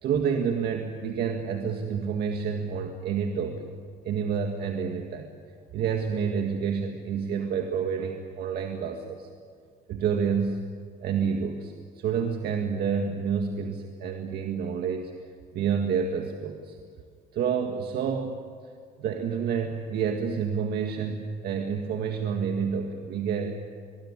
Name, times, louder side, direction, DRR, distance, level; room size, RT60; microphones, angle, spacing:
voice 1, 0.0-3.7 4.0-5.4 5.7-9.3 9.9-10.6 11.0-15.1 15.5-16.8 17.3-18.4 19.0-23.6, right 6 dB, 70° right, 4 dB, 1.9 m, -29 dB
24.0 x 21.0 x 10.0 m, 2.1 s
cardioid pair, 110°, 17 cm